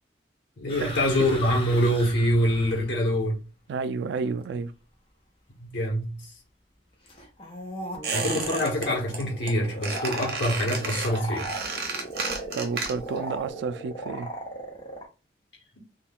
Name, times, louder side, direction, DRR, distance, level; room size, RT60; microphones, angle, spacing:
voice 1, 0.6-3.4 5.6-6.2 8.1-11.5, equal, 75° left, 1.0 m, -25 dB
sound 1, 0.7-3.0 7.1-15.1, right 1 dB, 30° left, 0.6 m, -38 dB
voice 2, 3.7-4.7 12.5-14.3, right 4 dB, 80° right, 0.3 m, -31 dB
Squeak, 8.0-8.9 9.1-9.5 9.8-13.2 13.5-13.6, right 4 dB, 60° right, 0.7 m, -32 dB
2.3 x 2.3 x 3.5 m
head